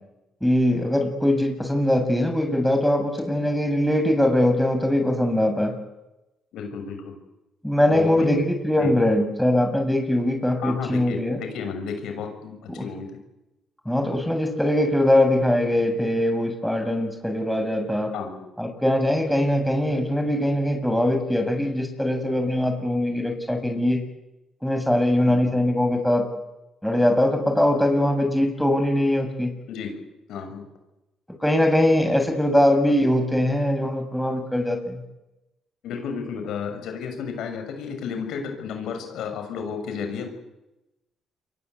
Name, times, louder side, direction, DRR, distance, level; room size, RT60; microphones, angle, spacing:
voice 1, 0.4-5.7 7.6-11.4 12.8-12.9 13.9-18.1 18.6-24.0 24.6-26.2 26.8-29.5 31.4-35.0, left 1 dB, 5° left, 5 dB, 7.4 m, -21 dB
voice 2, 6.5-7.2 7.9-8.4 8.7-8.9 10.6-13.2 18.1-18.5 25.3-25.5 29.7-29.9 30.3-30.7 35.8-40.3, left 6 dB, 75° left, 5 dB, 6.9 m, -32 dB
28.0 x 23.5 x 8.4 m, 0.96 s
supercardioid pair, 70°, 0 cm